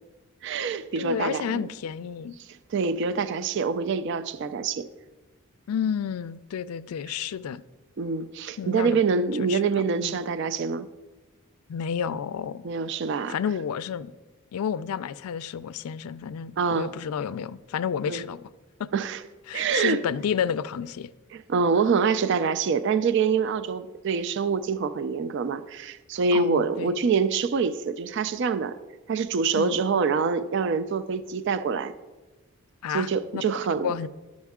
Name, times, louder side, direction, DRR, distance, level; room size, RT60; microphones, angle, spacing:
voice 1, 0.4-1.7 2.4-4.9 8.0-10.9 12.6-13.4 16.6-16.9 18.1-18.2 18.9-19.2 19.5-20.0 21.3-28.8 29.1-31.9 32.9-33.9, right 5 dB, 55° right, 0.3 m, -25 dB
voice 2, 1.0-2.3 5.7-7.6 8.6-9.0 9.4-10.2 11.7-12.7 13.3-14.1 14.5-18.5 18.8-18.9 19.5-21.1 26.3-27.0 29.5-29.8 32.8-33.4 33.8-34.1, left 7 dB, 85° left, 0.3 m, -31 dB
11.5 x 6.3 x 3.6 m
head